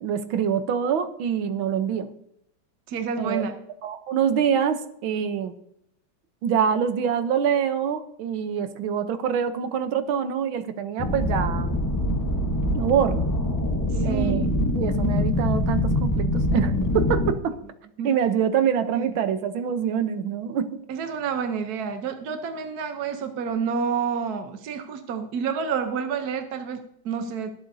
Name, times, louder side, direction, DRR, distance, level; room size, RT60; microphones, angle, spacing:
voice 1, 0.0-2.1 3.2-3.4 3.8-5.6 6.4-11.8 12.8-13.3 14.0-17.6 18.0-20.7, right 8 dB, 80° right, 9 dB, 1.7 m, -25 dB
voice 2, 2.9-3.5 13.9-14.5 18.0-18.1 18.9-19.1 20.9-27.5, right 6 dB, 60° right, 6 dB, 1.2 m, -29 dB
sound 1, 11.0-17.3, left 1 dB, 25° left, 0.4 m, -24 dB
23.0 x 7.9 x 2.7 m, 0.74 s
omnidirectional pair, 2.2 m